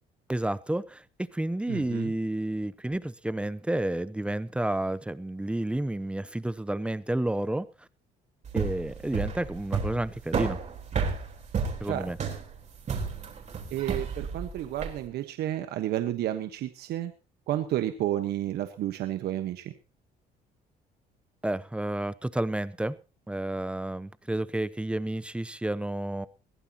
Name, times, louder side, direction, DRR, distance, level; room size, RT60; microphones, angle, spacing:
voice 1, 0.3-1.0 1.3-7.7 8.5-10.6 11.8-12.2 21.4-23.0 23.3-26.3, right 1 dB, 5° right, 0.7 m, -30 dB
voice 2, 1.7-2.1 11.9-12.3 13.7-17.1 17.5-19.7, right 13 dB, 75° right, 1.3 m, -31 dB
sound 1, 8.4-15.0, right 5 dB, 45° right, 3.9 m, -31 dB
21.0 x 15.5 x 2.9 m
cardioid pair, 110°, 17 cm